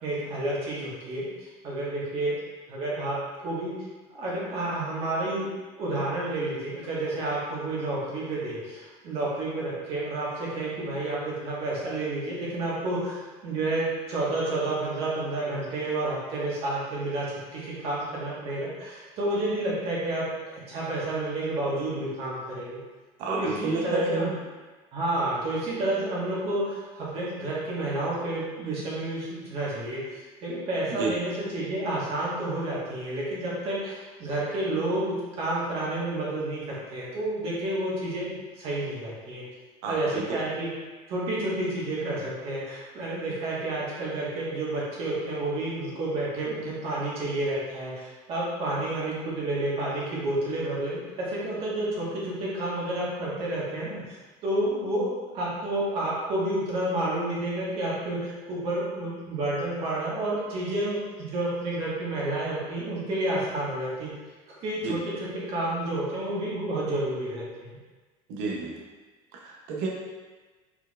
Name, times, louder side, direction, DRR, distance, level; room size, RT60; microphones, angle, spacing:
voice 1, 0.0-2.4 2.7-3.8 4.1-5.5 5.8-20.2 20.7-22.8 23.3-24.4 24.9-39.4 39.9-40.7 41.1-54.0 54.4-64.1 64.5-67.8, right 1 dB, 45° right, -6 dB, 1.5 m, -30 dB
voice 2, 23.2-24.3 31.0-31.1 39.8-40.4 64.8-65.1 68.3-68.7 69.3-69.9, right 3 dB, 70° right, -2 dB, 0.8 m, -30 dB
4.4 x 4.3 x 2.4 m, 1.3 s
cardioid pair, 155°, 14 cm